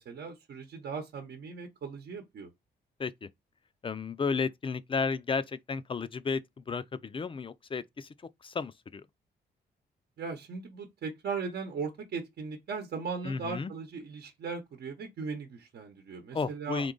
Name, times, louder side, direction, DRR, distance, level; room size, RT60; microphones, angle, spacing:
voice 1, 0.0-2.5 10.2-16.9, right 5 dB, 70° right, 0.9 m, -38 dB
voice 2, 3.8-8.1 8.4-9.1 13.2-13.7 16.3-16.9, left 5 dB, 30° left, 0.4 m, -33 dB
3.8 x 2.9 x 3.8 m
cardioid pair, 85°, 17 cm